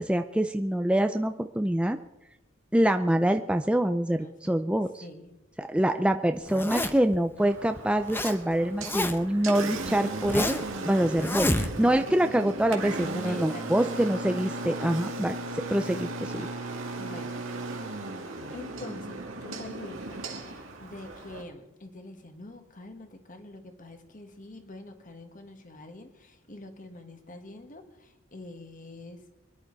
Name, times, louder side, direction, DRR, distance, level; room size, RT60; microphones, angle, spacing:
voice 1, 0.0-2.0 2.7-5.0 5.6-10.6 10.9-15.4 15.7-16.5, right 1 dB, 5° right, 7 dB, 0.4 m, -25 dB
voice 2, 4.2-4.7 5.0-5.4 11.8-12.0 13.2-14.2 17.0-17.4 18.5-29.2, left 2 dB, 40° left, 6 dB, 1.7 m, -45 dB
Zipper (clothing), 6.5-7.2 7.8-8.4 8.6-9.4 9.8-10.7 11.2-12.0, left 1 dB, 10° left, 0.8 m, -29 dB
Engine, 7.4-21.4, right 2 dB, 80° right, 2.1 m, -36 dB
23.5 x 11.0 x 4.1 m, 0.96 s
head